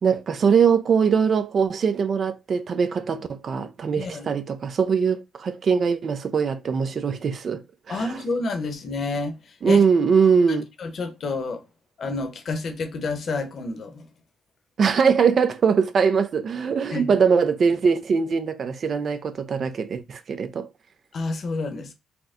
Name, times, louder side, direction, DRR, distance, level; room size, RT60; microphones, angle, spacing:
voice 1, 0.0-7.6 7.9-8.2 9.6-10.7 14.8-20.7, right 6 dB, 50° right, 0.5 m, -22 dB
voice 2, 4.0-4.3 7.9-9.3 9.6-9.8 10.5-11.6 12.0-14.0 16.9-17.1 21.1-21.9, left 3 dB, 55° left, 0.9 m, -29 dB
4.3 x 2.1 x 3.6 m
cardioid pair, 90°, 0 cm